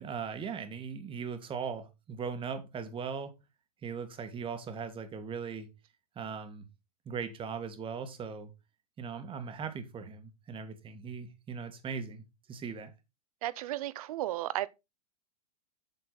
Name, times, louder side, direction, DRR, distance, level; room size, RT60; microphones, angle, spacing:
voice 1, 0.0-3.4 3.8-5.7 6.2-6.6 7.1-8.5 9.0-12.2 12.5-12.9, right 6 dB, 25° right, 2.2 m, -39 dB
voice 2, 13.4-14.7, right 14 dB, 60° right, 0.8 m, -34 dB
7.8 x 7.7 x 4.2 m
hypercardioid pair, 105°, 20 cm